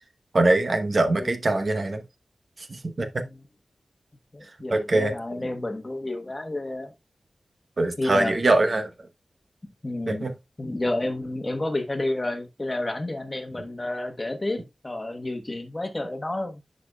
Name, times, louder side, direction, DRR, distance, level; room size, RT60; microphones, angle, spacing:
voice 1, 0.3-2.0 2.8-3.2 4.7-5.1 7.8-8.9 10.2-10.3, right 2 dB, 50° right, 0.9 m, -22 dB
voice 2, 1.2-1.7 3.2-3.5 4.3-6.9 8.0-8.4 9.8-10.3 10.6-16.6, left 2 dB, 25° left, 1.2 m, -30 dB
10.5 x 5.2 x 2.2 m
wide cardioid pair, 90°, 0 cm